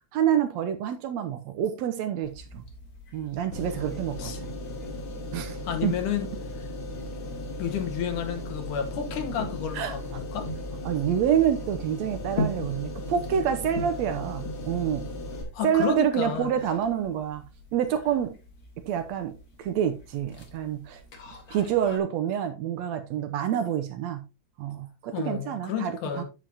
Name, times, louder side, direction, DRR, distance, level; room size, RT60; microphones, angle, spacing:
voice 1, 0.1-2.6 3.1-4.5 5.3-5.9 9.7-10.2 10.9-15.0 15.6-17.4 17.7-18.4 18.9-19.3 19.6-21.0 21.5-24.2 24.6-26.2, right 9 dB, 75° right, 1.8 m, -27 dB
sound 1, 2.2-22.0, left 1 dB, 35° left, 1.7 m, -42 dB
sound 2, 3.5-15.4, left 1 dB, 65° left, 3.2 m, -37 dB
voice 2, 5.6-6.3 7.6-10.5 15.5-16.5 25.1-26.2, left 8 dB, 90° left, 2.8 m, -31 dB
9.1 x 7.6 x 2.8 m
omnidirectional pair, 3.5 m